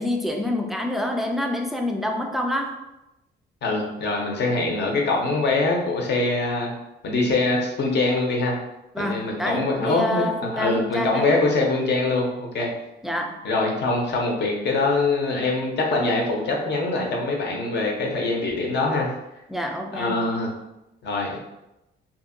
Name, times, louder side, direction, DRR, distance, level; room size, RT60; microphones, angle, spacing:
voice 1, 0.0-2.8 8.9-11.3 13.0-13.4 19.5-20.2, left 1 dB, ahead, 2 dB, 0.4 m, -27 dB
voice 2, 3.6-6.7 7.0-8.6 9.0-12.7 13.4-19.1 19.9-20.5 21.0-21.4, left 2 dB, 60° left, 0 dB, 0.8 m, -23 dB
2.7 x 2.7 x 2.6 m, 0.93 s
cardioid pair, 90°, 20 cm